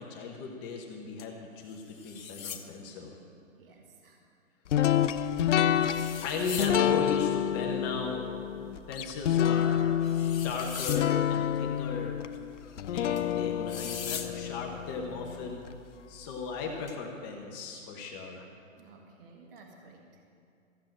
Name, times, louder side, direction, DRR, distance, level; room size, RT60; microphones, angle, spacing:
voice 1, 0.0-3.1 6.2-8.2 8.9-9.9 10.1-12.2 12.9-15.7 16.1-18.5, left 4 dB, 15° left, 1 dB, 0.9 m, -36 dB
sound 1, 1.2-1.3 1.7-2.7 5.4-5.5 5.9-6.8 9.6-9.7 10.0-11.1 13.2-13.3 13.7-14.3 16.9-17.0, left 7 dB, 80° left, 1.5 m, -40 dB
voice 2, 3.6-4.2 18.8-20.2, right 3 dB, 40° right, 1 dB, 1.6 m, -54 dB
sound 2, 4.7-15.7, left 10 dB, 60° left, 0.6 m, -28 dB
14.5 x 7.5 x 8.8 m, 2.6 s
hypercardioid pair, 155°, 40 cm